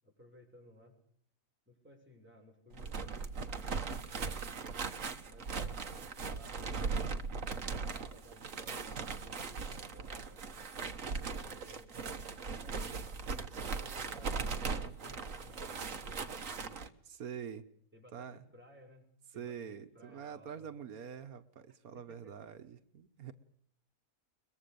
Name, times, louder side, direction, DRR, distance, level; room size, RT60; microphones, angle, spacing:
voice 1, 0.0-0.9 1.7-4.3 5.2-7.4 7.8-10.6 11.4-13.1 13.5-16.8 17.9-19.0 19.3-20.7 21.9-22.3 23.2-23.3, equal, 5° right, 0 dB, 6.8 m, -59 dB
sound 1, 2.7-16.9, right 5 dB, 65° right, 1.7 m, -39 dB
voice 2, 17.1-17.7 18.1-18.4 19.3-23.3, right 7 dB, 90° right, 9 dB, 1.6 m, -45 dB
23.0 x 22.5 x 7.0 m, 0.64 s
omnidirectional pair, 1.5 m